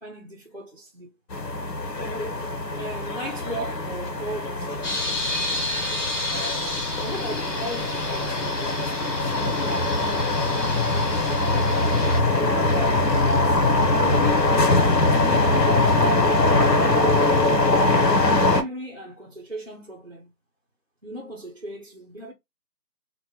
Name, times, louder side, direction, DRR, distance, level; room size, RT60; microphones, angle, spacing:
voice 1, 0.0-1.1 2.7-5.1 7.0-9.3 12.4-16.7 17.9-20.3 21.0-22.3, equal, 45° right, 0.5 m, -36 dB
sound 1, 1.3-18.6, left 2 dB, 90° left, 1.0 m, -22 dB
sound 2, 4.8-12.2, left 2 dB, 50° left, 1.5 m, -31 dB
3.2 x 2.1 x 2.9 m
figure-of-eight pair, 165°, 49 cm